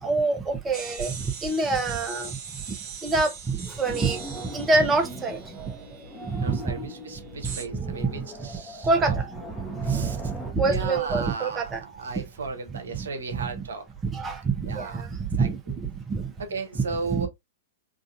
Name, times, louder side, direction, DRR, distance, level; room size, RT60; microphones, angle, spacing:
voice 1, 0.0-2.6 3.0-4.2 4.5-5.4 6.2-6.6 7.4-8.5 8.8-9.3 9.6-11.8 12.1-12.2 12.7-13.1 13.4-13.6 14.0-16.3 17.1-17.3, right 3 dB, 20° right, 0.9 m, -26 dB
sound 1, 0.7-6.4 7.4-7.6, right 6 dB, 40° right, 1.2 m, -41 dB
sound 2, 3.8-10.5, right 1 dB, 5° left, 1.1 m, -40 dB
voice 2, 6.4-9.2 9.8-10.2 10.7-13.9 14.7-15.1 15.4-15.5 16.5-17.3, right 4 dB, 70° right, 0.9 m, -35 dB
3.8 x 2.6 x 2.5 m
figure-of-eight pair, 105°, 0 cm